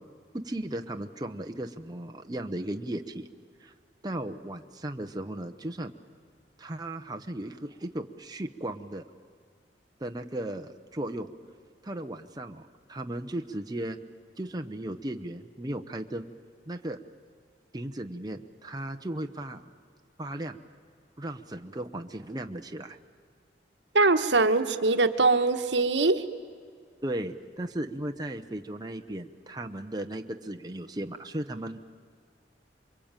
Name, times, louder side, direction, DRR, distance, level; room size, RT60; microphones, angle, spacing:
voice 1, 0.3-3.3 3.6-3.7 4.0-5.9 6.6-9.0 10.0-11.3 11.8-14.0 14.4-16.3 16.7-17.0 17.7-19.7 20.2-20.6 21.2-23.0 27.0-31.8, right 1 dB, 20° right, 5 dB, 0.9 m, -36 dB
voice 2, 23.9-26.2, right 3 dB, 75° right, 8 dB, 1.3 m, -22 dB
28.0 x 23.0 x 9.0 m, 2.1 s
head